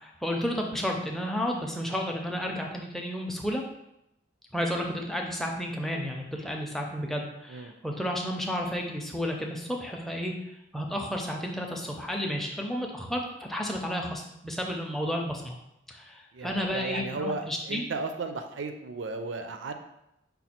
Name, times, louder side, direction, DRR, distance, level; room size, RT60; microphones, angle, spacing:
voice 1, 0.0-3.6 4.5-10.3 10.7-15.6 15.9-17.8, equal, ahead, 0 dB, 0.5 m, -32 dB
voice 2, 16.3-19.7, right 3 dB, 70° right, 7 dB, 0.5 m, -35 dB
5.3 x 2.3 x 4.2 m, 0.84 s
head